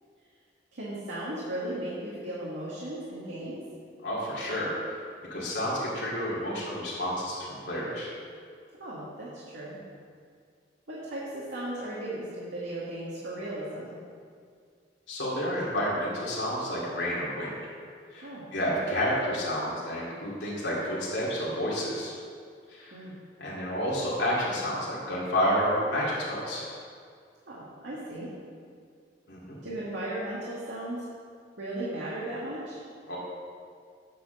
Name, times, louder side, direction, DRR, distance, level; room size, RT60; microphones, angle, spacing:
voice 1, 0.7-3.6 8.8-9.8 10.9-13.9 18.2-18.8 22.9-23.1 27.4-28.3 29.6-31.0 31.6-32.8, right 1 dB, 85° right, -7 dB, 1.6 m, -36 dB
voice 2, 4.0-4.7 5.3-8.1 15.1-17.5 18.1-22.2 22.7-23.0 23.4-26.7 29.3-29.6 33.1-33.2, equal, 75° left, -7 dB, 2.4 m, -30 dB
9.3 x 4.3 x 6.5 m, 2.1 s
head